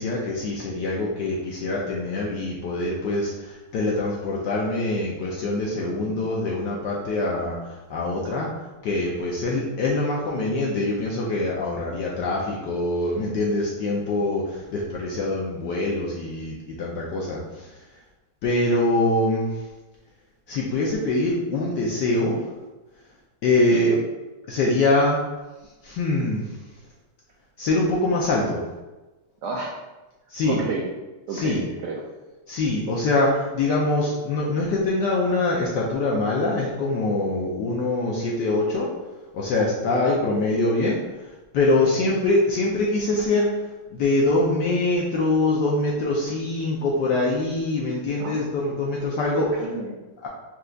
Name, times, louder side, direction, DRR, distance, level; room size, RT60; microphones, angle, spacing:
voice 1, 0.0-8.5 8.8-17.7 18.4-19.5 20.5-22.4 23.4-23.9 24.5-25.2 25.8-26.4 27.6-28.6 30.3-30.6 31.3-31.6 32.5-38.9 39.3-41.0 41.5-43.5 43.9-49.7 50.2-50.3, left 2 dB, 75° left, -3 dB, 1.0 m, -24 dB
voice 2, 5.8-6.2 8.2-8.5 23.7-24.0 29.4-29.7 30.4-30.9 31.3-32.0 39.8-40.4 41.8-41.9 48.2-48.4 49.4-50.0, right 3 dB, 80° right, -1 dB, 0.9 m, -32 dB
4.5 x 2.3 x 3.7 m, 1.1 s
omnidirectional pair, 2.4 m